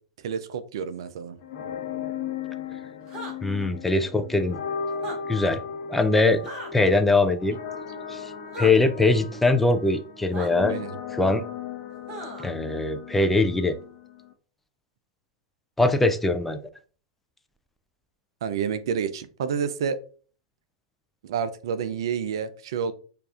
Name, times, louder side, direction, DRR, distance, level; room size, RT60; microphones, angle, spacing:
voice 1, 0.2-1.4 10.7-11.0 18.4-20.0 21.2-22.9, right 7 dB, 55° right, 0.4 m, -29 dB
sound 1, 1.4-14.3, left 7 dB, 45° left, 0.7 m, -37 dB
sound 2, 3.1-3.4 4.9-5.2 6.4-6.7 8.5-8.7 10.3-10.5 12.1-12.5, right 2 dB, 25° right, 1.4 m, -36 dB
voice 2, 3.4-4.6 5.3-5.6 5.9-6.4 6.7-7.6 8.1-10.8 11.1-11.4 12.4-13.8 15.8-16.6, left 2 dB, 5° left, 0.4 m, -22 dB
6.5 x 2.5 x 2.4 m
figure-of-eight pair, 95°, 3 cm